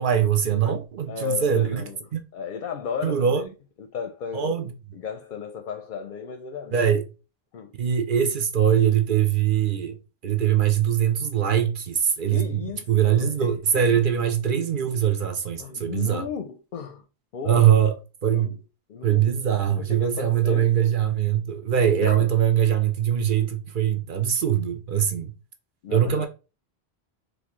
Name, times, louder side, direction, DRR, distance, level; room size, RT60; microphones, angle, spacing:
voice 1, 0.0-2.2 3.0-3.5 4.3-4.7 6.7-7.0 7.8-10.0 10.2-16.2 17.4-18.0 18.2-18.6 19.0-25.3 25.9-26.3, right 9 dB, 55° right, 0.8 m, -22 dB
voice 2, 1.1-2.0 2.3-3.5 3.8-4.5 4.9-6.9 7.5-7.7 12.3-14.1 15.6-17.0 17.3-17.7 18.3-18.6 18.9-19.3 19.7-20.7 22.0-22.2 25.8-26.3, left 7 dB, 55° left, 0.6 m, -35 dB
4.2 x 3.3 x 3.0 m
omnidirectional pair, 1.1 m